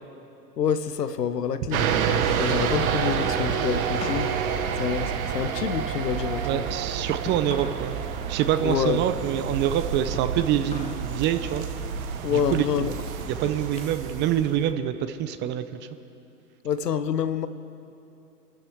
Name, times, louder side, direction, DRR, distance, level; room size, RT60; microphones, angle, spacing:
voice 1, 0.6-1.9 2.4-4.4 4.8-6.6 8.6-9.0 12.2-13.0 16.6-17.5, left 7 dB, 85° left, 12 dB, 0.9 m, -27 dB
sound 1, 1.4-4.4 4.7-7.9 8.2-11.1 11.5-11.9 12.4-14.0 14.4-15.6, left 4 dB, 15° left, 1.0 m, -44 dB
sound 2, 1.7-14.7, right 7 dB, 60° right, 1.4 m, -29 dB
voice 2, 6.4-8.0 8.3-11.6 12.3-12.6 13.3-15.6, right 11 dB, 25° right, 10 dB, 0.5 m, -26 dB
24.0 x 13.0 x 3.5 m, 2.7 s
hypercardioid pair, 100°, 47 cm